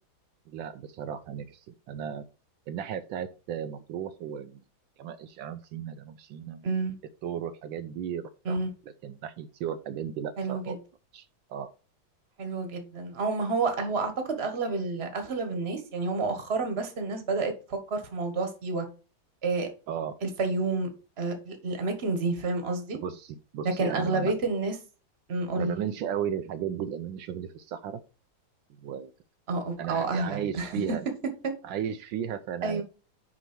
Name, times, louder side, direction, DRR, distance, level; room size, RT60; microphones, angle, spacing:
voice 1, 0.5-2.2 2.7-4.6 5.0-6.6 7.2-8.6 9.0-10.8 11.1-11.7 19.9-20.1 22.9-24.3 25.5-28.0 28.8-29.1 29.8-31.1 31.6-32.8, right 9 dB, 80° right, 1.3 m, -35 dB
voice 2, 6.6-7.0 8.4-8.7 10.4-10.7 12.4-18.9 19.4-19.7 20.2-20.9 21.2-23.0 23.8-24.7 25.3-25.7 29.5-30.7 31.4-31.5 32.6-32.8, right 3 dB, 35° right, 1.6 m, -29 dB
6.1 x 5.3 x 6.0 m
omnidirectional pair, 2.2 m